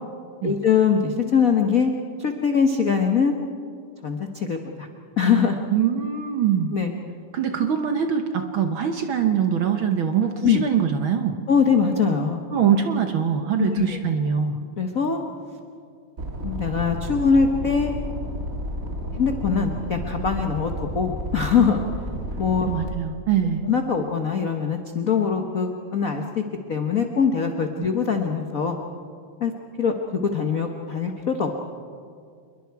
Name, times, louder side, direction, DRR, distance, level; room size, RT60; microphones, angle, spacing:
voice 1, 0.4-1.9 2.2-3.3 4.0-4.9 5.2-5.6 6.7-6.9 10.4-10.6 11.5-12.4 13.6-14.0 14.8-15.2 16.4-17.9 19.1-21.8 22.4-22.7 23.6-26.4 26.7-28.8 29.4-29.5 29.8-31.5, left 6 dB, 90° left, 4 dB, 0.7 m, -22 dB
voice 2, 5.7-6.7 7.3-11.4 12.5-14.6 22.7-23.6 27.8-27.9, right 8 dB, 60° right, 6 dB, 1.4 m, -23 dB
sound 1, 16.2-22.9, right 1 dB, 35° right, 1.9 m, -31 dB
27.0 x 22.0 x 4.7 m, 2.2 s
omnidirectional pair, 3.3 m